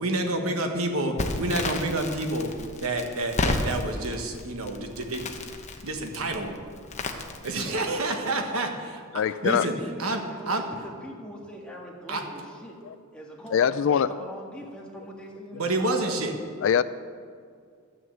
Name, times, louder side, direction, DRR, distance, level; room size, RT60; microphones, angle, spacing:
voice 1, 0.0-2.5 2.8-5.4 5.8-6.5 7.4-10.6 12.1-12.2 15.5-16.3, right 2 dB, 70° right, 4 dB, 1.4 m, -29 dB
Crackle, 1.2-8.0, left 2 dB, 30° left, 0.9 m, -33 dB
voice 2, 7.7-8.5 9.5-12.8 13.1-16.2, equal, 5° left, -2 dB, 1.8 m, -42 dB
voice 3, 9.1-9.6 13.5-14.1 16.6-16.8, left 8 dB, 60° left, 15 dB, 0.3 m, -22 dB
12.5 x 6.4 x 8.0 m, 2.2 s
head